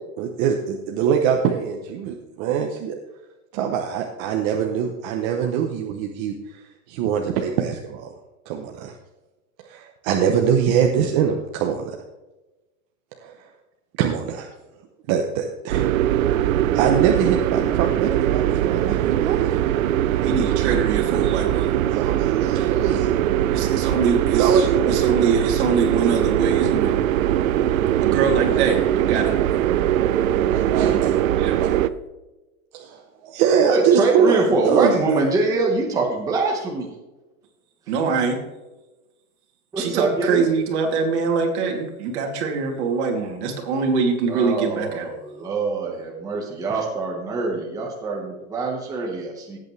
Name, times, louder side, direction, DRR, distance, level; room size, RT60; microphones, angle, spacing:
voice 1, 0.2-3.0 3.5-8.1 8.5-8.9 9.6-12.0 13.2-13.5 14.0-14.5 15.1-15.9 16.7-19.6 21.9-23.1 24.3-25.0 28.5-28.6 30.4-31.2 31.6-31.7 32.7-35.0, right 7 dB, 25° right, 3 dB, 0.7 m, -23 dB
sound 1, 15.7-31.9, right 12 dB, 65° right, 0.7 m, -21 dB
voice 2, 20.2-21.7 23.5-27.0 27.8-29.4 30.8-31.6 37.9-38.4 39.8-45.1, right 5 dB, 50° right, 2 dB, 2.8 m, -24 dB
voice 3, 33.6-36.9 39.7-40.4 44.3-49.6, right 3 dB, 10° right, -2 dB, 1.2 m, -24 dB
17.5 x 8.2 x 3.2 m, 1.1 s
supercardioid pair, 170°, 43 cm